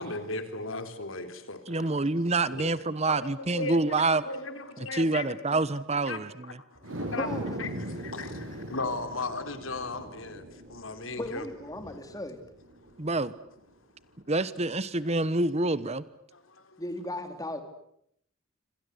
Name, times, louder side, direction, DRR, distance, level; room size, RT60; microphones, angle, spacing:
voice 1, 0.0-2.0 2.6-2.8 3.1-5.2 5.5-5.6 6.1-6.2 6.8-7.3 7.6-7.7 8.0-10.4 10.7-11.4 16.3-16.4, left 3 dB, 85° left, 3.7 m, -36 dB
voice 2, 1.7-4.2 4.8-6.6 13.0-13.3 14.3-16.0, right 2 dB, 35° right, 1.1 m, -27 dB
sound 1, 6.8-13.3 13.7-13.8, right 1 dB, 80° right, 6.9 m, -40 dB
voice 3, 7.2-7.6 7.9-8.0 11.2-12.4 16.8-17.6, left 1 dB, 20° left, 3.5 m, -36 dB
27.5 x 26.5 x 8.1 m
head